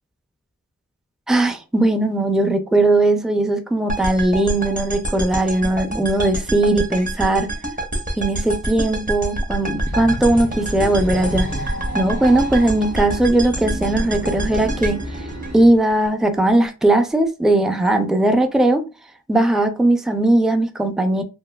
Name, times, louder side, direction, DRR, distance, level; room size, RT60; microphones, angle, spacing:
voice 1, 1.3-7.5 8.2-15.3 15.5-18.8 19.3-21.2, right 1 dB, ahead, 0.5 m, -18 dB
sound 1, 3.9-16.1, right 1 dB, 25° right, 0.9 m, -27 dB
sound 2, 9.6-15.8, equal, 65° right, 1.5 m, -30 dB
3.1 x 2.5 x 2.2 m
cardioid pair, 45°, 31 cm